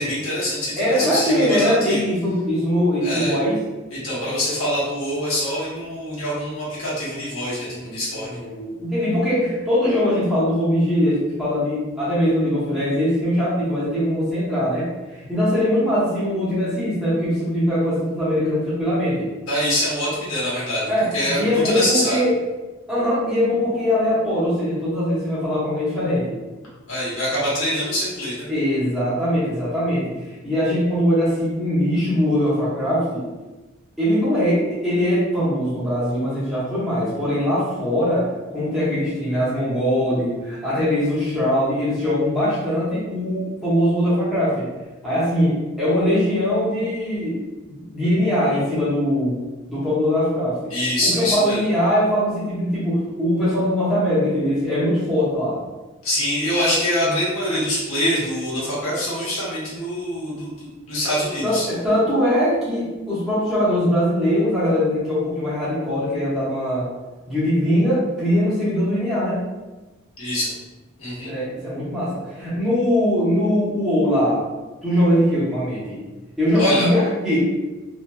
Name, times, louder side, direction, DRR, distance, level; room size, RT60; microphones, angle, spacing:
voice 1, 0.0-2.0 3.0-3.3 3.9-8.3 19.5-22.2 26.9-28.5 50.7-51.6 56.0-61.6 70.2-70.5 71.0-71.3 76.6-76.9, equal, 80° left, -8 dB, 1.1 m, -24 dB
voice 2, 0.8-3.6 7.6-19.3 20.9-22.3 22.9-26.4 28.5-33.3 34.0-44.7 45.0-47.4 47.7-49.4 49.7-50.7 51.0-55.6 61.4-66.9 67.3-69.5 71.2-74.5 74.8-76.0 76.4-77.4, equal, ahead, -12 dB, 0.9 m, -21 dB
2.7 x 2.5 x 2.2 m, 1.1 s
head